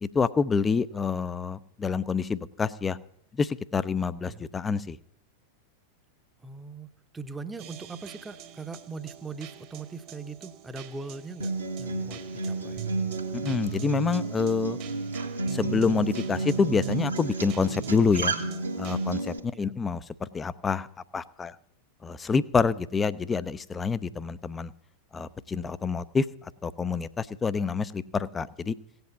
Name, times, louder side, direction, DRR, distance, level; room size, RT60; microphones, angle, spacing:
voice 1, 0.0-3.0 3.4-5.0 13.3-14.8 15.5-18.3 18.8-20.9 21.1-21.5 22.0-24.7 25.1-26.2 26.6-28.7, left 5 dB, 15° left, 16 dB, 0.6 m, -27 dB
voice 2, 6.4-11.5 11.8-12.9 19.5-19.7, right 4 dB, 10° right, 11 dB, 0.9 m, -40 dB
sound 1, 7.6-19.2, right 9 dB, 40° right, 1.3 m, -40 dB
Acoustic guitar, 11.4-19.4, right 2 dB, 75° right, 1.7 m, -32 dB
17.0 x 8.0 x 8.1 m, 0.72 s
figure-of-eight pair, 90°, 0 cm